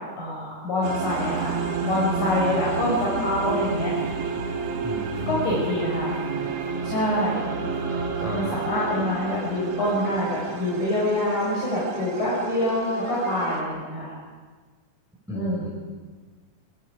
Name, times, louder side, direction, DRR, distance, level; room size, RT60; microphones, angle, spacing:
voice 1, 0.2-1.5 1.8-3.9 5.3-6.2 6.8-7.5 8.3-14.1 15.3-15.7, left 1 dB, 75° left, -6 dB, 6.8 m, -25 dB
sound 1, 0.8-13.6, right 5 dB, 60° right, 2.8 m, -30 dB
voice 2, 4.8-5.4 8.2-8.5 15.3-15.7, right 1 dB, ahead, -4 dB, 4.7 m, -34 dB
26.0 x 24.5 x 4.8 m, 1.4 s
omnidirectional pair, 3.5 m